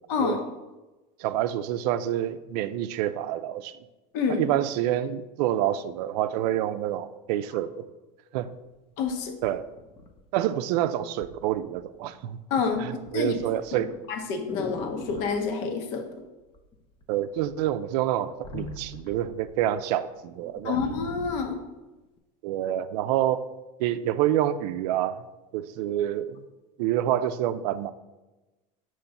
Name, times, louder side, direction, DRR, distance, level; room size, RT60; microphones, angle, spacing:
voice 1, 0.1-0.4 4.1-4.5 9.0-9.3 12.5-12.9 13.1-13.3 14.1-16.1 18.5-18.7 20.6-21.6, left 5 dB, 65° left, 5 dB, 1.0 m, -28 dB
voice 2, 1.2-3.7 4.3-7.7 8.3-8.5 9.4-9.7 10.3-12.4 12.8-13.9 17.1-20.8 22.4-23.5 23.8-25.2 25.5-26.4 26.8-27.9, right 12 dB, 75° right, 12 dB, 0.4 m, -27 dB
sound 1, 8.4-8.5 9.1-10.6 11.2-11.4 11.8-12.2 12.5-15.4 16.5-17.0 17.4-19.6 20.0-20.1 20.4-21.5 22.2-22.3, left 3 dB, 25° left, 0.5 m, -41 dB
5.7 x 3.0 x 5.5 m, 1.1 s
supercardioid pair, 130°, 21 cm